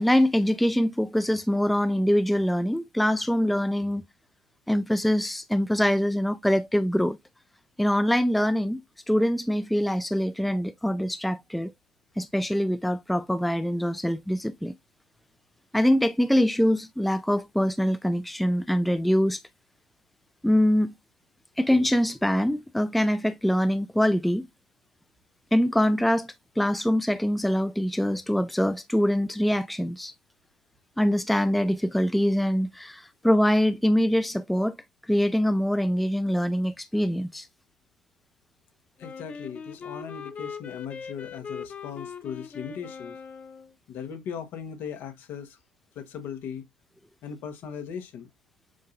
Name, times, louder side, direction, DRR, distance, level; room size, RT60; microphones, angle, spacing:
voice 1, 0.0-4.0 4.7-7.2 7.8-8.8 9.1-11.7 12.2-14.7 15.7-19.4 20.4-20.9 21.6-24.5 25.5-30.1 31.0-34.7 35.1-37.5, equal, ahead, 0.3 m, -24 dB
voice 2, 39.0-43.2 43.9-45.6 45.9-46.6 47.2-48.3, left 7 dB, 55° left, 1.3 m, -38 dB
Wind instrument woodwind instrument, 39.0-43.7, left 6 dB, 30° left, 0.7 m, -40 dB
7.5 x 2.7 x 2.5 m
hypercardioid pair, 80°, 4 cm